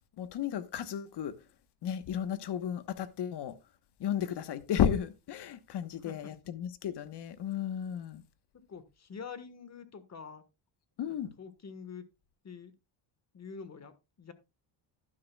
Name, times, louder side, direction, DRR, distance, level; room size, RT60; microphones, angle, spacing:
voice 1, 0.2-1.3 1.8-3.5 4.0-8.2 11.0-11.3, left 9 dB, 55° left, 1.2 m, -33 dB
voice 2, 8.7-10.4 11.1-12.0 12.4-12.7 13.3-13.9 14.2-14.3, left 6 dB, 30° left, 1.4 m, -46 dB
11.5 x 10.5 x 2.3 m
cardioid pair, 110°, 49 cm